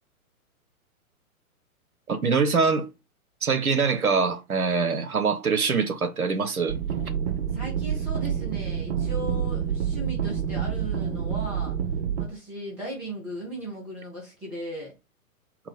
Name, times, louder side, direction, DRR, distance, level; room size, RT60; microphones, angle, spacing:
voice 1, 2.1-2.9 3.4-6.8, right 5 dB, 80° right, 0.9 m, -24 dB
sound 1, 6.7-12.3, right 8 dB, 45° right, 0.8 m, -28 dB
voice 2, 7.5-11.8 12.2-14.9, right 1 dB, 5° right, 0.4 m, -37 dB
4.0 x 2.0 x 4.3 m
figure-of-eight pair, 115°, 43 cm